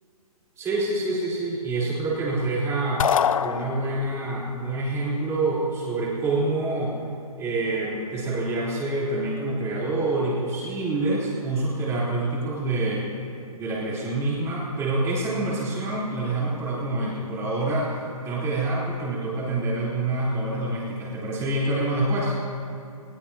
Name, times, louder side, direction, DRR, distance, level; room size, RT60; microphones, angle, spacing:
voice 1, 0.6-3.0 3.4-7.0 7.4-13.1 13.5-18.0 18.2-22.4, right 2 dB, 15° right, -6 dB, 4.0 m, -26 dB
sound 1, 3.0-4.3, left 8 dB, 60° left, 0.6 m, -24 dB
20.5 x 18.0 x 2.9 m, 2.5 s
hypercardioid pair, 145°, 19 cm